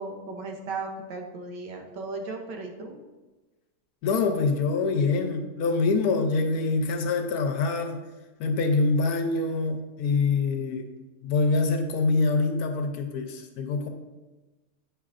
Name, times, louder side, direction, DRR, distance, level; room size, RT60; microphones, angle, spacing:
voice 1, 0.0-3.0, right 3 dB, 90° right, 3 dB, 1.5 m, -36 dB
voice 2, 4.0-8.0 8.4-10.9 11.2-13.9, left 3 dB, 70° left, 5 dB, 1.1 m, -25 dB
8.8 x 5.6 x 2.5 m, 1.2 s
omnidirectional pair, 1.8 m